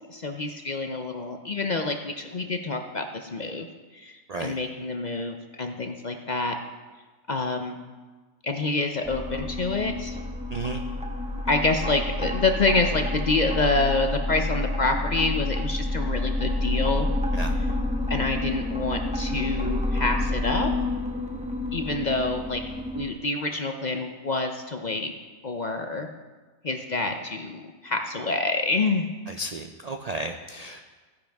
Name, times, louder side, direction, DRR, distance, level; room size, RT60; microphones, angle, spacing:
voice 1, 0.1-3.7 3.9-6.6 7.3-7.8 8.4-10.2 11.5-17.1 17.6-17.7 18.1-20.7 21.7-22.6 22.9-25.1 25.4-26.1 26.6-29.1, left 3 dB, 45° left, 5 dB, 0.6 m, -27 dB
sound 1, 9.0-23.1, left 2 dB, 5° right, 0.5 m, -29 dB
voice 2, 29.4-30.8, right 2 dB, 80° right, 5 dB, 0.3 m, -33 dB
15.0 x 10.0 x 3.5 m, 1.3 s
omnidirectional pair, 1.5 m